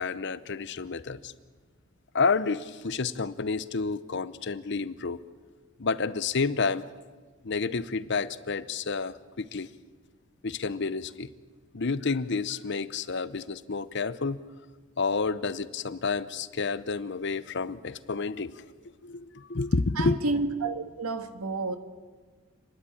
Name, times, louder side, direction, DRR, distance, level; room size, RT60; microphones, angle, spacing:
voice 1, 0.0-1.3 2.1-5.2 5.8-6.9 7.4-9.7 10.4-11.3 11.7-14.4 15.0-18.6 19.0-20.2, left 4 dB, 55° left, 0.7 m, -30 dB
voice 2, 20.0-21.8, right 3 dB, 85° right, 1.6 m, -30 dB
29.0 x 11.0 x 8.8 m
head